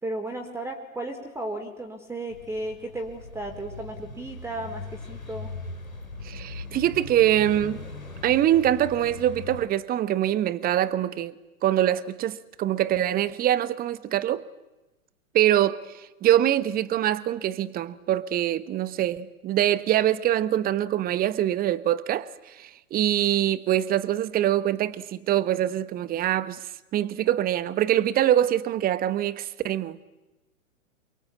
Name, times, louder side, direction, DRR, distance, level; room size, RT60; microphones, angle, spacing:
voice 1, 0.0-5.5, right 2 dB, 5° right, 4.1 m, -34 dB
sound 1, 2.3-9.7, left 2 dB, 85° left, 5.7 m, -40 dB
voice 2, 6.2-7.8 8.2-11.3 11.6-14.4 15.3-15.8 16.2-22.3 22.6-26.6 26.9-30.1, right 12 dB, 20° right, 1.2 m, -24 dB
28.5 x 22.5 x 8.6 m
figure-of-eight pair, 105°, 41 cm